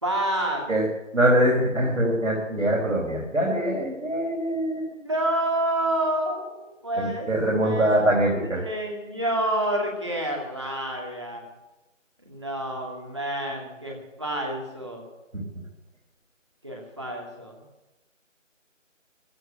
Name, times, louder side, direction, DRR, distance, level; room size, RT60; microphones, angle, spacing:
voice 1, 0.0-0.6 4.9-7.3 7.6-8.0 8.4-11.4 12.3-15.0 16.6-17.6, right 1 dB, 20° right, 0 dB, 2.3 m, -28 dB
voice 2, 1.1-4.9 7.0-8.6 15.3-15.6, right 1 dB, 75° right, -2 dB, 4.8 m, -23 dB
15.5 x 10.5 x 8.8 m, 1.0 s
figure-of-eight pair, 180°, 39 cm